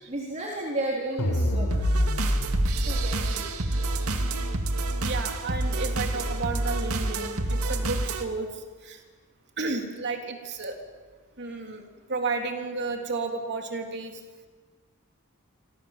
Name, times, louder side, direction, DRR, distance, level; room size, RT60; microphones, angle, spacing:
voice 1, 0.1-1.7 2.9-3.4, right 1 dB, 35° right, -3 dB, 3.8 m, -32 dB
sound 1, 1.2-3.0, equal, 85° left, 4.5 m, -25 dB
sound 2, 1.7-8.2, right 2 dB, 75° right, 2.2 m, -28 dB
voice 2, 5.0-9.0 9.6-10.8 11.4-14.2, right 3 dB, 50° right, 3 dB, 3.5 m, -32 dB
28.5 x 25.0 x 7.6 m, 1.4 s
head